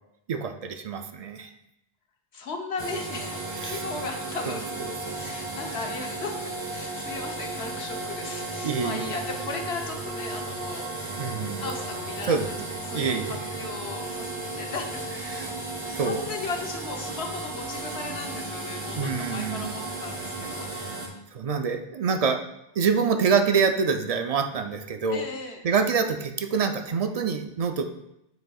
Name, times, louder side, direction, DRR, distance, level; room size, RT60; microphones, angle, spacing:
voice 1, 0.3-1.5 3.6-3.8 4.5-4.6 5.1-5.4 8.6-9.1 11.2-11.6 12.3-12.5 12.9-13.4 15.3-15.5 15.8-16.3 19.0-19.8 21.3-22.4 22.8-25.2 25.6-27.9, right 5 dB, 55° right, 6 dB, 0.4 m, -26 dB
voice 2, 2.3-4.6 5.1-6.4 6.7-11.3 11.6-12.4 12.8-20.8 25.1-25.6, left 4 dB, 85° left, 3 dB, 1.2 m, -37 dB
sound 1, 2.8-21.1, right 2 dB, 30° right, 1.0 m, -34 dB
6.7 x 6.3 x 2.3 m, 0.83 s
omnidirectional pair, 1.0 m